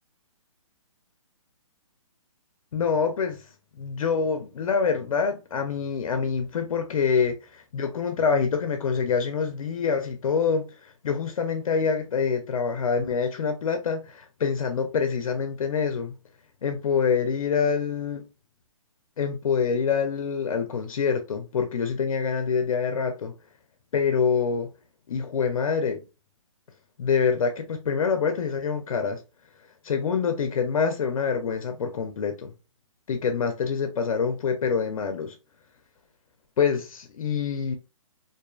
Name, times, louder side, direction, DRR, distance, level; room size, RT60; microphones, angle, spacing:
voice 1, 2.7-3.5 3.8-16.1 16.6-18.3 19.2-23.3 23.9-24.7 25.1-26.0 27.0-29.2 29.8-32.5 33.1-35.4 36.6-37.8, left 6 dB, 75° left, 0.5 m, -26 dB
2.5 x 2.3 x 2.2 m
hypercardioid pair, 160°, 18 cm